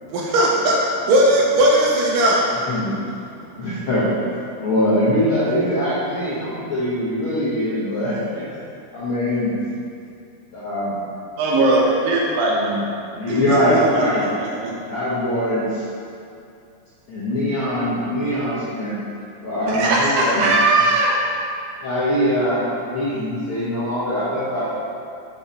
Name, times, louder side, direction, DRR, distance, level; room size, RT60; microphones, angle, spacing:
voice 1, 0.1-0.8 1.1-2.5, right 1 dB, 85° right, -3 dB, 2.3 m, -16 dB
voice 2, 3.6-4.1 4.6-8.4 8.9-9.5 10.5-11.0 12.5-12.8 13.1-14.2 14.8-15.8 17.1-19.0 19.4-20.4 21.8-24.6, equal, 55° left, -11 dB, 1.6 m, -22 dB
voice 3, 11.4-12.6 13.3-14.7 19.7-21.1, right 2 dB, 70° right, -4 dB, 2.3 m, -20 dB
5.6 x 5.6 x 4.2 m, 2.5 s
omnidirectional pair, 3.9 m